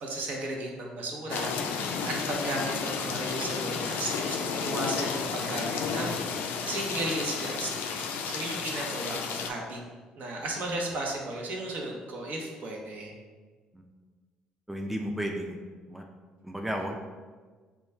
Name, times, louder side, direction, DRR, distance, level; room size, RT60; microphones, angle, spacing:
voice 1, 0.0-9.8 10.2-13.1, right 2 dB, 55° right, -1 dB, 0.8 m, -35 dB
sound 1, 1.3-9.5, left 5 dB, 70° left, 0.3 m, -32 dB
voice 2, 14.7-15.6 15.9-16.0 16.4-17.0, equal, 5° right, 2 dB, 0.4 m, -33 dB
3.1 x 2.3 x 4.2 m, 1.4 s
hypercardioid pair, 55°, 3 cm